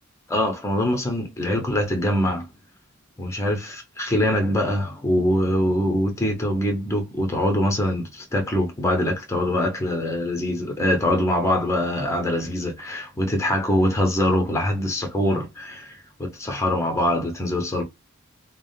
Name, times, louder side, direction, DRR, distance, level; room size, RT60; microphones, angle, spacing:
voice 1, 0.3-2.5 3.2-17.8, left 1 dB, 15° left, 0.7 m, -23 dB
3.5 x 2.1 x 2.3 m
head